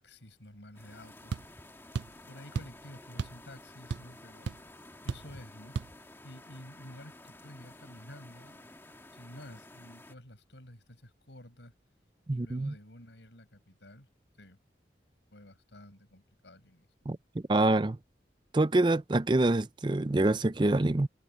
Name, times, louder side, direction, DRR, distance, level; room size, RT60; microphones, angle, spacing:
voice 1, 0.0-1.4 2.3-4.5 5.0-5.8 6.2-8.7 9.1-11.7 12.3-14.1 14.4-14.6 15.3-16.9, left 1 dB, 90° left, 7.3 m, -51 dB
sound 1, 0.7-10.1, left 1 dB, 15° left, 2.1 m, -52 dB
sound 2, 1.3-1.5 1.9-2.2 2.6-2.8 3.2-3.4 3.7-4.2 4.5-4.6 5.1-5.3 5.8-5.9, right 5 dB, 85° right, 0.5 m, -34 dB
voice 2, 12.3-12.7 17.1-17.2 17.5-18.0 18.5-21.1, right 2 dB, 25° right, 0.5 m, -26 dB
head